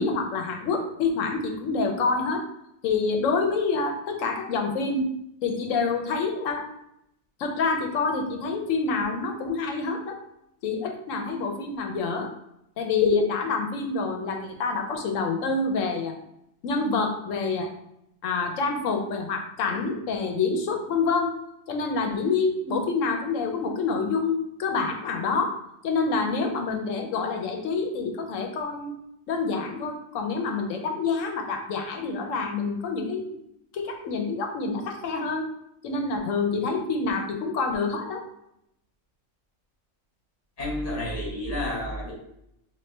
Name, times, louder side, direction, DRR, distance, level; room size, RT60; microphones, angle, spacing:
voice 1, 0.0-2.4 2.8-5.1 5.4-6.7 7.4-10.2 10.6-12.3 12.8-16.1 16.6-17.7 18.2-21.4 21.7-25.6 25.8-28.9 29.3-33.4 33.7-35.5 35.8-38.2, left 4 dB, 70° left, 4 dB, 1.0 m, -27 dB
voice 2, 40.6-42.1, left 1 dB, 30° left, -4 dB, 1.2 m, -30 dB
4.2 x 2.5 x 3.2 m, 0.80 s
omnidirectional pair, 1.4 m